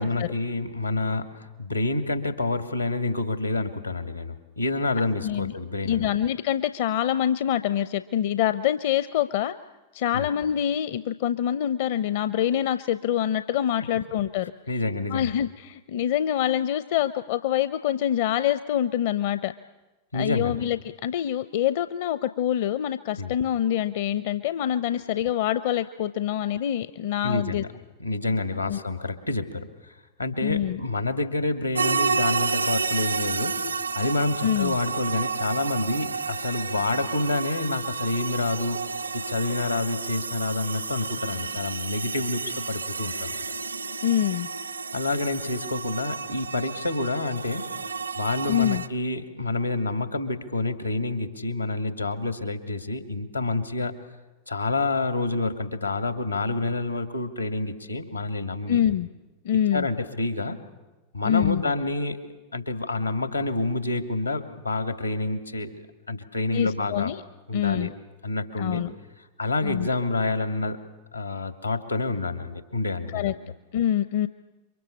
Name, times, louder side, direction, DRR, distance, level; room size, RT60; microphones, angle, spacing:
voice 1, 0.0-6.2 10.1-10.3 14.7-15.3 20.1-20.6 23.2-23.3 24.9-25.0 27.2-27.7 28.0-33.6 33.9-38.8 39.1-43.3 44.9-47.7 48.2-54.0 54.5-58.8 59.5-60.6 61.1-62.2 62.5-65.8 66.1-67.1 67.5-67.9 68.2-68.8 69.2-70.8 71.1-73.3, left 2 dB, 85° left, 8 dB, 2.4 m, -28 dB
voice 2, 5.8-9.5 9.9-14.5 15.1-19.5 20.1-27.6 28.7-28.8 30.4-30.8 34.4-34.8 44.0-44.5 48.5-48.8 58.7-59.1 59.4-59.9 61.2-61.6 66.5-67.2 67.5-67.9 68.6-68.9 69.6-69.9 73.1-73.3 73.7-74.3, left 10 dB, 50° left, 13 dB, 0.8 m, -25 dB
sound 1, 31.7-48.9, right 4 dB, 80° right, 0.9 m, -31 dB
28.5 x 24.0 x 7.3 m, 1.1 s
figure-of-eight pair, 90°, 0 cm